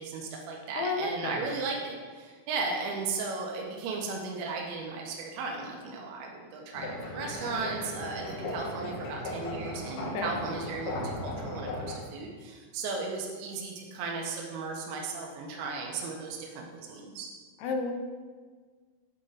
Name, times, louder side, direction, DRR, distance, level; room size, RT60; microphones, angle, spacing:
voice 1, 0.0-17.3, right 4 dB, 80° right, 0 dB, 2.5 m, -36 dB
voice 2, 0.8-1.5 10.1-10.3 17.6-17.9, left 4 dB, 80° left, 3 dB, 2.6 m, -31 dB
sound 1, 6.7-12.0, left 1 dB, 65° left, 2.6 m, -37 dB
7.7 x 4.2 x 3.9 m, 1.5 s
omnidirectional pair, 4.5 m